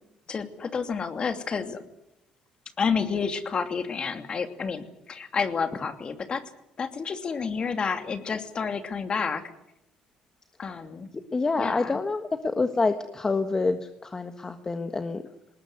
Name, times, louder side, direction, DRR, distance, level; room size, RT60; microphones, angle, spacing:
voice 1, 0.3-1.8 2.8-6.4 6.8-9.4 10.6-11.1 11.6-12.0, left 5 dB, 40° left, 8 dB, 2.7 m, -30 dB
voice 2, 11.3-15.2, left 3 dB, 25° left, 8 dB, 1.5 m, -27 dB
20.0 x 19.5 x 9.5 m, 0.86 s
supercardioid pair, 85°, 2 cm